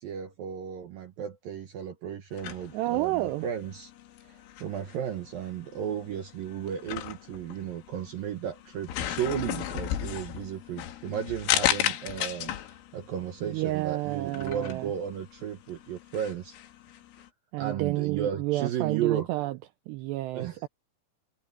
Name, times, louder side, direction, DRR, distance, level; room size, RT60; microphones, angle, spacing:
voice 1, 0.0-3.9 4.2-16.6 17.6-19.3 20.3-20.7, right 9 dB, 70° right, 2.3 m, -34 dB
sound 1, 2.3-17.3, left 12 dB, 85° left, 4.3 m, -35 dB
voice 2, 2.7-3.5 13.5-14.9 17.5-19.6 19.9-20.7, right 18 dB, 85° right, 2.4 m, -30 dB
omnidirectional pair, 5.6 m